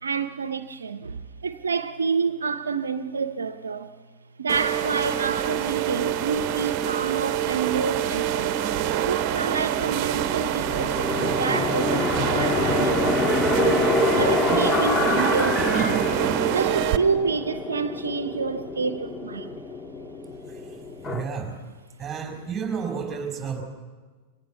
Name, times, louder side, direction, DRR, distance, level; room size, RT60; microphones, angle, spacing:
voice 1, 0.0-3.9 4.4-8.6 9.0-16.1 16.5-19.6, right 5 dB, 80° right, 0.7 m, -28 dB
sound 1, 4.5-17.0, right 10 dB, 45° right, 1.1 m, -26 dB
sound 2, 10.6-21.3, left 3 dB, 20° left, 1.5 m, -26 dB
voice 2, 21.1-21.6 22.0-23.6, right 6 dB, 20° right, 4.7 m, -31 dB
23.5 x 18.5 x 6.9 m
figure-of-eight pair, 95°, 0 cm